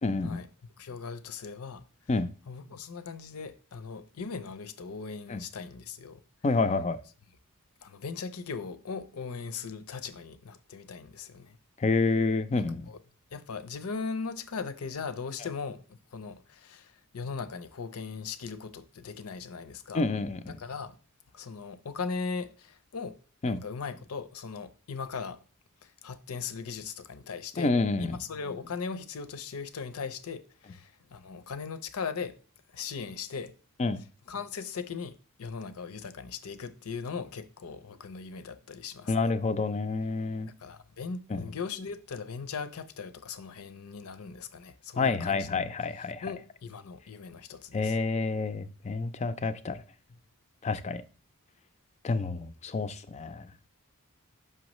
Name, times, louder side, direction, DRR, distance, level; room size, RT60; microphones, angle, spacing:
voice 1, 0.0-0.4 2.1-2.3 5.3-5.4 6.4-7.0 11.8-12.9 19.9-20.6 23.4-23.6 27.6-28.2 33.8-34.0 39.1-40.5 41.3-41.4 45.0-46.3 47.7-49.8 50.6-51.0 52.0-53.5, left 3 dB, 30° left, 0.4 m, -28 dB
voice 2, 0.8-1.8 2.5-6.2 7.8-11.6 12.6-13.0 13.3-20.0 20.5-21.0 21.3-23.2 23.5-25.4 25.8-27.7 28.0-32.4 32.7-33.5 34.3-39.3 40.6-45.6 46.2-48.0, left 5 dB, 75° left, 0.6 m, -39 dB
6.2 x 5.6 x 3.0 m
head